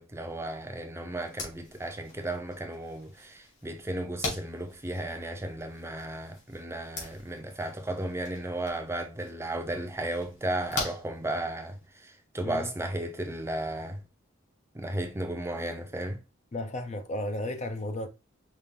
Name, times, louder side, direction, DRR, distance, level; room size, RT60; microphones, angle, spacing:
voice 1, 0.0-14.0 14.7-16.2, right 1 dB, 15° right, 0.6 m, -34 dB
sound 1, 1.2-11.9, left 3 dB, 65° left, 2.1 m, -42 dB
voice 2, 16.5-18.1, left 1 dB, 35° left, 0.5 m, -34 dB
5.5 x 2.5 x 3.3 m
head